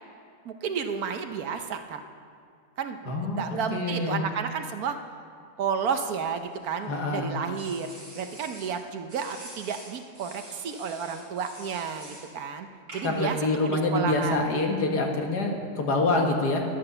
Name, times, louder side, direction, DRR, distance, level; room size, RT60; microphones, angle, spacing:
voice 1, 0.4-2.0 2.8-5.0 5.6-7.9 8.2-12.7 12.9-14.4, right 6 dB, 65° right, 7 dB, 1.2 m, -32 dB
voice 2, 3.1-4.2 6.9-7.3 13.0-16.6, left 2 dB, 75° left, 2 dB, 2.1 m, -26 dB
sound 1, 6.1-7.0 7.5-8.8 9.1-12.3 12.9-13.3, right 1 dB, 45° right, 3.9 m, -46 dB
12.5 x 11.0 x 6.7 m, 2.3 s
omnidirectional pair, 1.8 m